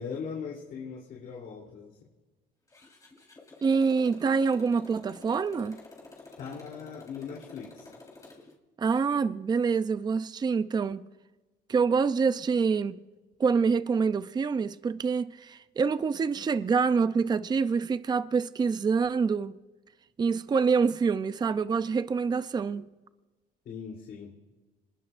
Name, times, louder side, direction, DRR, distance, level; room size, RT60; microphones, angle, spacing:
voice 1, 0.0-2.0 6.4-7.9 23.6-24.4, left 6 dB, 60° left, 3.3 m, -39 dB
Motorcycle, 2.7-8.5, left 3 dB, 20° left, 4.0 m, -50 dB
voice 2, 3.6-5.8 8.8-11.1 11.7-13.0 13.4-19.6 20.2-22.9, right 5 dB, 25° right, 0.5 m, -26 dB
26.0 x 19.5 x 2.6 m
cardioid pair, 110°, 17 cm